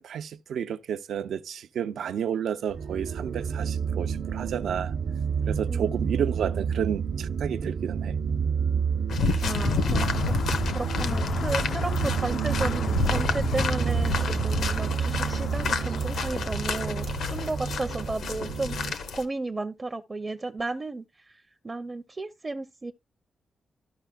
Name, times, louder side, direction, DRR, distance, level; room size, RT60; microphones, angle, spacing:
voice 1, 0.0-4.9 5.5-8.2, right 8 dB, 90° right, 0.5 m, -31 dB
sound 1, 2.7-18.9, right 6 dB, 60° right, 0.8 m, -29 dB
voice 2, 5.7-6.0 9.4-10.3 10.7-21.4 21.6-22.9, right 3 dB, 25° right, 0.5 m, -34 dB
sound 2, 9.1-19.2, left 5 dB, 90° left, 1.0 m, -30 dB
sound 3, 9.4-18.2, left 8 dB, 70° left, 0.3 m, -39 dB
13.5 x 5.6 x 2.2 m
wide cardioid pair, 145°, 0 cm